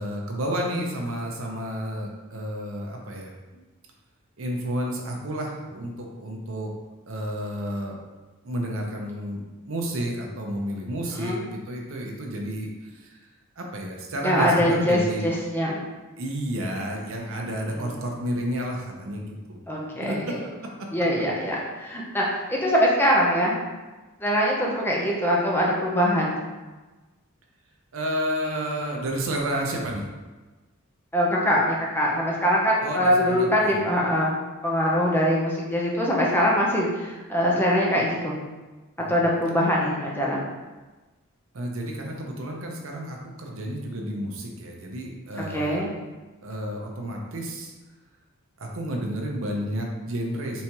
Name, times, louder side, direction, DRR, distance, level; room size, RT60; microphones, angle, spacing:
voice 1, 0.0-3.6 4.4-6.7 7.1-8.0 8.4-13.2 13.6-15.3 16.2-19.6 20.0-20.4 20.8-20.9 27.9-30.0 32.8-33.8 39.0-39.2 41.5-45.9 46.4-47.7 48.6-50.6, equal, 60° right, 0 dB, 0.7 m, -31 dB
voice 2, 14.2-15.8 19.7-20.4 20.9-23.6 24.2-26.4 31.1-34.3 34.6-38.4 39.1-40.4 45.5-45.9, equal, 10° left, -4 dB, 0.7 m, -23 dB
4.3 x 3.4 x 2.9 m, 1.2 s
head